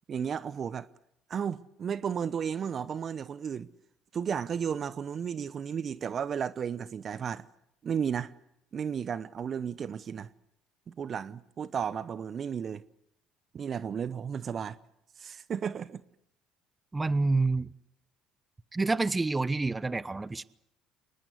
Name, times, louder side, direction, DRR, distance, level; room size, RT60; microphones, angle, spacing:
voice 1, 0.1-0.9 1.3-3.7 4.1-7.4 7.8-8.3 8.7-10.3 10.9-12.8 13.5-14.8 15.2-16.0, right 7 dB, 45° right, 0.8 m, -33 dB
voice 2, 16.9-17.7 18.7-20.4, right 3 dB, 20° right, 0.9 m, -28 dB
24.5 x 20.5 x 8.3 m
hypercardioid pair, 65°, 0 cm